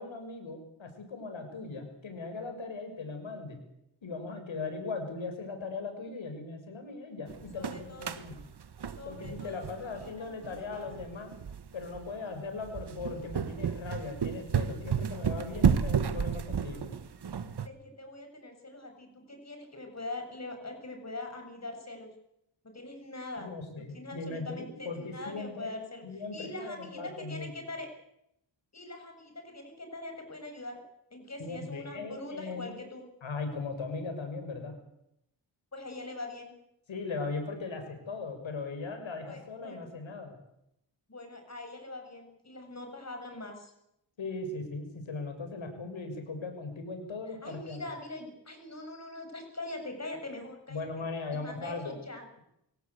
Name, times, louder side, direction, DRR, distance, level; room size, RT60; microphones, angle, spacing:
voice 1, 0.0-3.6 4.0-8.4 9.0-11.3 11.7-16.9 23.4-25.7 26.0-27.6 31.4-32.7 33.2-34.7 36.9-40.3 44.2-47.8 50.7-52.0, left 3 dB, 80° left, 6 dB, 6.5 m, -38 dB
sound 1, 7.3-17.7, right 7 dB, 60° right, 1.5 m, -32 dB
voice 2, 7.5-8.2 9.0-9.6 9.9-10.9 12.2-12.3 17.6-22.1 22.6-23.6 23.9-27.9 28.7-30.8 31.1-33.1 35.7-36.6 39.2-39.9 41.1-43.7 47.3-50.9 51.3-52.3, left 2 dB, 35° left, 4 dB, 7.2 m, -43 dB
24.0 x 17.5 x 8.3 m, 0.80 s
cardioid pair, 70°, 46 cm